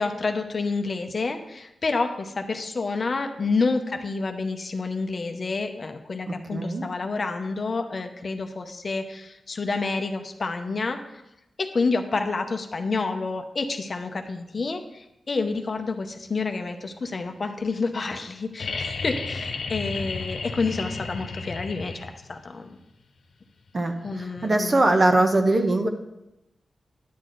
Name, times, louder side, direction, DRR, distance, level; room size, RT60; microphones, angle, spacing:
voice 1, 0.0-11.2 11.6-22.8 24.0-25.3, left 3 dB, 40° left, 5 dB, 0.7 m, -29 dB
voice 2, 6.3-6.8 23.7-25.9, right 2 dB, 30° right, 6 dB, 0.8 m, -22 dB
sound 1, 18.6-22.4 24.1-24.2, left 4 dB, 75° left, 1.0 m, -33 dB
10.5 x 8.4 x 3.9 m, 0.89 s
wide cardioid pair, 165°, 0 cm